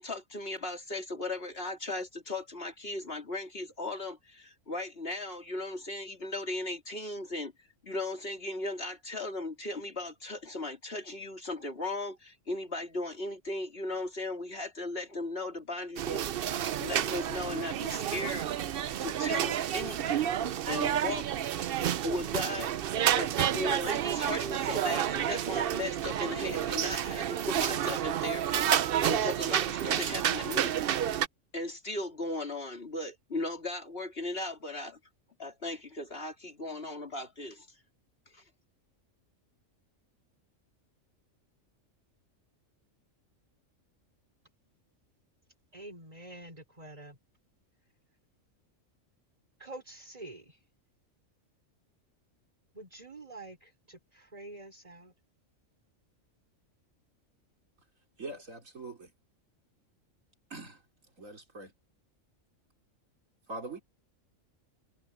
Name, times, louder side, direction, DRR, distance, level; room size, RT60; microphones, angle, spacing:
voice 1, 0.0-16.3 16.8-18.5 19.0-20.4 20.7-21.3 22.0-22.7 23.1-30.8 31.5-35.0 35.4-37.7 38.3-38.4, left 2 dB, 50° left, 3.2 m, -37 dB
sound 1, 16.0-31.3, right 10 dB, 55° right, 0.7 m, -30 dB
voice 2, 45.7-47.2 49.6-50.6 52.7-55.1, right 2 dB, 30° right, 4.3 m, -47 dB
voice 3, 58.2-59.1 60.5-60.8 61.2-61.7 63.5-63.8, right 2 dB, 80° right, 3.7 m, -42 dB
omnidirectional pair, 1.4 m